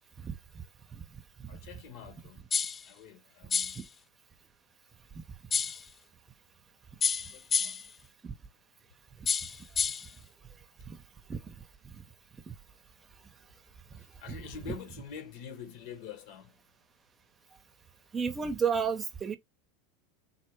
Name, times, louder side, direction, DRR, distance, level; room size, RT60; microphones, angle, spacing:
voice 1, 0.2-0.6 0.9-1.0 1.4-1.5 8.2-8.3 10.9-11.0 11.3-11.5 11.8-12.0 14.3-14.4 18.1-19.4, right 6 dB, 25° right, 0.8 m, -32 dB
voice 2, 1.5-2.5 2.8-3.8 7.1-7.9 13.9-16.6, left 8 dB, 60° left, 1.1 m, -46 dB
sound 1, 2.5-2.9 3.5-3.9 5.5-5.9 7.0-7.9 9.3-10.1, left 6 dB, 25° left, 0.3 m, -29 dB
4.1 x 2.1 x 4.5 m
hypercardioid pair, 95°, 0 cm